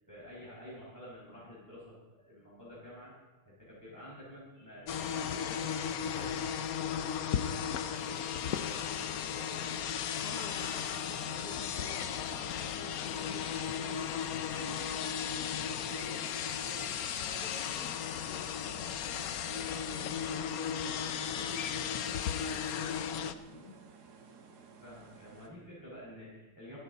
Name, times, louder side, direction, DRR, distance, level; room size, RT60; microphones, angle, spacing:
voice 1, 0.1-3.1 3.5-5.8 6.0-8.2 8.4-9.8 10.3-10.8 11.9-12.1 14.6-14.8 15.4-15.6 24.8-26.8, equal, 10° right, -9 dB, 5.2 m, -50 dB
sound 1, 4.9-23.3, left 8 dB, 75° left, 0.8 m, -35 dB
sound 2, 9.0-25.5, right 5 dB, 50° right, 1.7 m, -55 dB
voice 2, 10.2-14.2 15.8-16.9 17.2-23.8, left 1 dB, 25° left, 1 dB, 1.0 m, -50 dB
24.5 x 10.5 x 4.0 m, 1.2 s
omnidirectional pair, 2.3 m